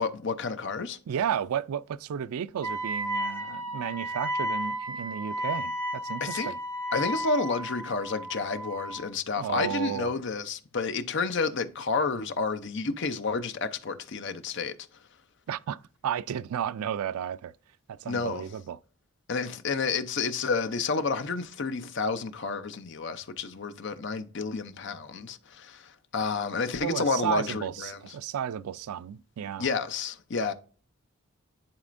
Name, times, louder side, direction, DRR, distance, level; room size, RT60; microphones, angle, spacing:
voice 1, 0.0-1.0 6.2-6.5 6.9-14.7 18.1-18.4 19.3-28.0 29.6-30.5, left 4 dB, 55° left, 0.6 m, -30 dB
voice 2, 1.1-6.6 9.4-10.1 15.5-17.5 17.9-18.8 26.8-29.7, right 9 dB, 85° right, 0.3 m, -33 dB
Wind instrument woodwind instrument, 2.6-9.1, equal, 15° left, 2.0 m, -33 dB
10.5 x 4.1 x 2.5 m
head